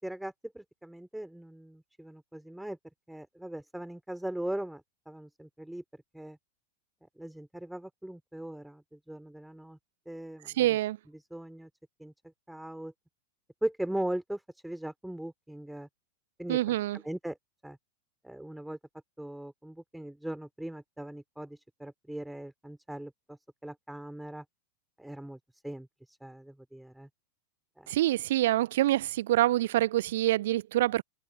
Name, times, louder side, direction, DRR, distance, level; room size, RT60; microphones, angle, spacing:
voice 1, 0.0-2.8 3.1-5.8 6.1-6.4 7.2-9.8 10.1-10.8 11.3-11.7 12.0-12.1 12.5-12.9 13.6-15.9 16.4-16.6 17.0-17.4 17.6-17.8 18.2-18.8 19.2-24.4 25.0-25.4 25.6-27.1 27.8-27.9, right 1 dB, 5° right, 5.6 m, -39 dB
voice 2, 10.6-11.0 16.5-17.0 27.9-31.0, right 14 dB, 55° right, 1.1 m, -26 dB
figure-of-eight pair, 90°, 0 cm